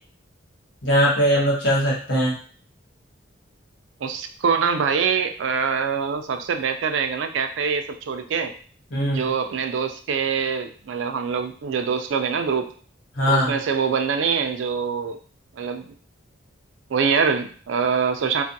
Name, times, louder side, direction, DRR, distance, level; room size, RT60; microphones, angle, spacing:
voice 1, 0.8-2.3 8.9-9.2 13.2-13.5, equal, 65° left, -5 dB, 1.1 m, -20 dB
voice 2, 4.0-8.5 9.1-12.7 13.3-15.2 15.5-15.9 16.9-18.4, right 6 dB, 70° right, 7 dB, 0.3 m, -24 dB
2.5 x 2.4 x 2.6 m, 0.43 s
head